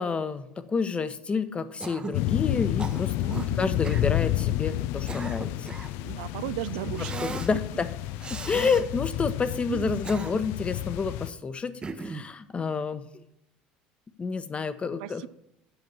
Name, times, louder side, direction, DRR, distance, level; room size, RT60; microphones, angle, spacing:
voice 1, 0.0-3.1 3.6-5.8 7.2-7.9 8.3-13.1 14.2-15.2, left 5 dB, 30° left, 12 dB, 0.9 m, -29 dB
Cough, 1.8-2.2 2.8-3.5 3.8-4.1 4.8-6.0 7.0-7.5 8.2-8.8 9.8-10.6 11.8-12.3, right 4 dB, 25° right, 0.8 m, -38 dB
sound 1, 2.1-11.3, left 14 dB, 70° left, 0.4 m, -30 dB
voice 2, 3.2-3.8 6.0-7.1 9.7-10.0 15.0-15.3, right 15 dB, 80° right, 16 dB, 0.3 m, -35 dB
8.0 x 5.9 x 6.8 m, 0.80 s
hypercardioid pair, 80°, 4 cm